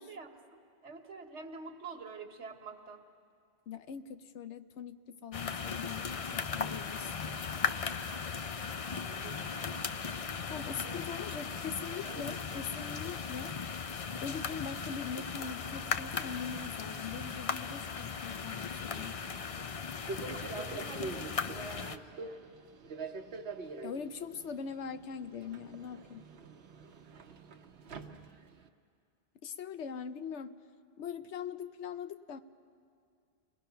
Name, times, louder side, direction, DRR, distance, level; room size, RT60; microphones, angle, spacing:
voice 1, 0.0-3.0 8.9-9.9 10.8-11.2 11.8-12.9 20.3-22.6, right 4 dB, 85° right, 5 dB, 1.6 m, -47 dB
voice 2, 3.7-7.1 10.5-13.5 14.2-19.2 23.8-26.2 29.4-30.6 31.0-32.4, left 6 dB, 80° left, 11 dB, 1.1 m, -42 dB
sound 1, 5.3-22.0, left 5 dB, 45° left, 0.5 m, -37 dB
Subway metro underground, 18.9-28.7, right 3 dB, 65° right, 1.1 m, -46 dB
29.5 x 20.0 x 5.7 m, 2.3 s
omnidirectional pair, 1.2 m